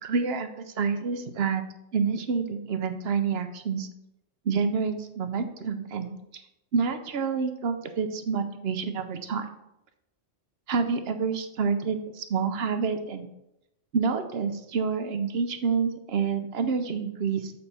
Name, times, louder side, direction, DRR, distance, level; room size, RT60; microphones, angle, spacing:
voice 1, 0.0-1.6 1.9-3.9 4.5-6.4 6.7-9.5 10.7-13.3 13.9-17.5, right 5 dB, 65° right, 8 dB, 0.9 m, -28 dB
6.9 x 4.1 x 5.8 m, 0.86 s
omnidirectional pair, 1.2 m